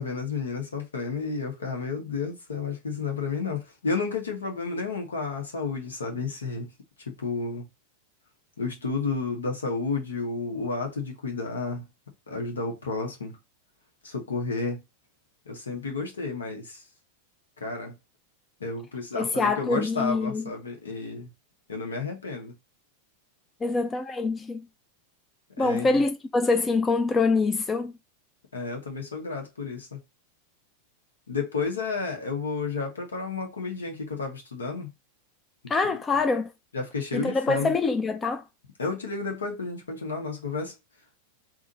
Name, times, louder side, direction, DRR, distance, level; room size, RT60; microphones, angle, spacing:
voice 1, 0.0-6.7 7.1-7.6 8.6-11.8 12.3-13.4 14.0-14.8 15.5-16.8 17.6-17.9 18.6-21.3 21.7-22.5 25.6-25.9 28.5-30.0 31.3-34.9 35.9-36.0 36.7-37.7 38.8-40.7, left 4 dB, 70° left, 1.3 m, -31 dB
voice 2, 19.2-20.4 23.6-24.7 25.6-27.9 35.7-36.5 37.1-38.4, left 3 dB, 15° left, 0.4 m, -25 dB
3.7 x 2.5 x 4.1 m
figure-of-eight pair, 90°, 0 cm